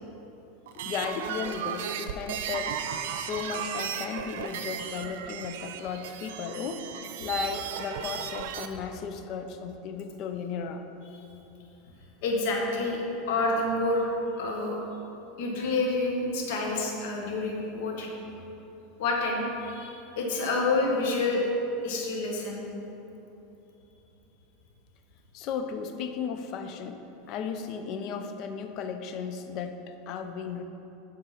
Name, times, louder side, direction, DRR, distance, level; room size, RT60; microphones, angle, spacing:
voice 1, 0.7-2.8 3.1-6.8 7.2-10.8 25.3-27.0 27.3-30.6, left 6 dB, 45° left, 7 dB, 0.5 m, -35 dB
sound 1, 0.7-8.7, right 8 dB, 75° right, 0.4 m, -35 dB
voice 2, 12.2-14.1 14.4-14.8 15.4-18.1 19.0-21.5 21.8-22.6, left 2 dB, 70° left, -1 dB, 1.3 m, -28 dB
8.2 x 3.7 x 5.7 m, 3.0 s
supercardioid pair, 140°, 0 cm